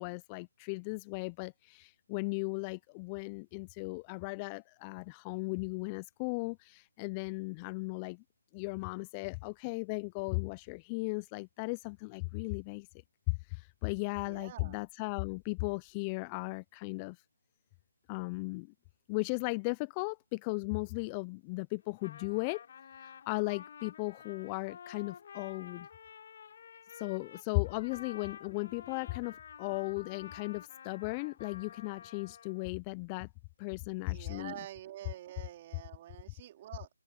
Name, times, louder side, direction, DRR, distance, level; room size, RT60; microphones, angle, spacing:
voice 1, 0.0-8.2 8.5-12.9 13.3-17.2 18.1-18.7 19.1-22.6 23.0-25.9 26.9-33.3 33.6-34.5, left 29 dB, 15° left, 0.4 m, -36 dB
voice 2, 14.3-14.8 34.1-36.9, right 13 dB, 25° right, 4.1 m, -47 dB
Trumpet, 21.8-32.7, left 7 dB, 40° left, 3.1 m, -51 dB
open air
figure-of-eight pair, 155°, 0 cm